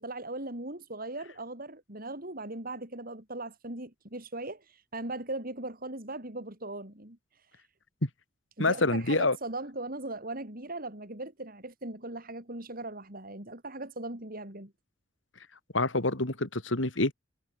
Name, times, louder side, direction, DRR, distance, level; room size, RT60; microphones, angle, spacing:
voice 1, 0.0-7.5 8.6-14.7, right 2 dB, 50° right, 6.8 m, -39 dB
voice 2, 8.6-9.4 15.7-17.1, left 2 dB, 85° left, 3.2 m, -26 dB
head